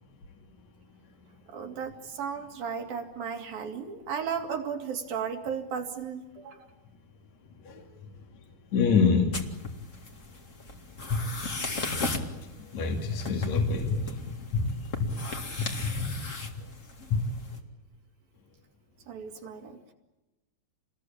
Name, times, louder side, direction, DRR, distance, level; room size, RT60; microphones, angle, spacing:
voice 1, 1.5-6.7 19.1-19.9, right 7 dB, 75° right, 3 dB, 4.5 m, -35 dB
voice 2, 8.7-9.3 11.1-11.2 12.7-14.1 14.5-14.7 15.0-15.1 15.8-16.1 17.1-17.2, left 5 dB, 50° left, 2 dB, 3.5 m, -25 dB
sound 1, 9.3-17.6, left 3 dB, 25° left, 2.2 m, -37 dB
29.0 x 21.0 x 8.8 m, 1.0 s
omnidirectional pair, 4.2 m